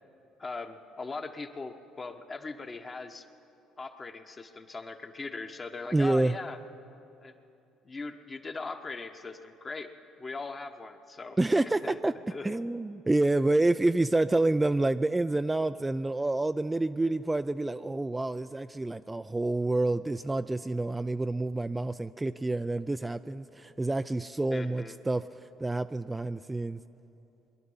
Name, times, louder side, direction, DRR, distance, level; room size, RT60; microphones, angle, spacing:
voice 1, 0.4-3.3 3.8-6.6 7.2-7.3 7.8-9.9 10.2-11.4 11.8-11.9 12.3-12.4 24.5-25.0, left 3 dB, 30° left, 6 dB, 1.2 m, -40 dB
voice 2, 5.9-6.3 11.4-12.1 12.4-25.3 25.6-26.8, right 2 dB, 15° right, 11 dB, 0.3 m, -28 dB
21.5 x 11.0 x 5.6 m, 2.8 s
hypercardioid pair, 65°, 0 cm